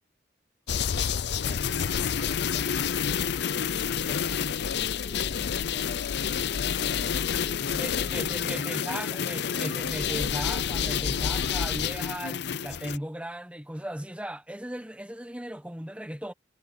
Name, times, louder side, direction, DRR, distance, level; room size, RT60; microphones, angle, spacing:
sound 1, 0.7-13.0, left 7 dB, 65° left, 0.5 m, -29 dB
voice 1, 1.4-3.3 3.8-10.3 10.8-12.1, left 1 dB, 30° left, 2.6 m, -50 dB
voice 2, 7.7-16.3, right 1 dB, 5° right, 1.3 m, -37 dB
head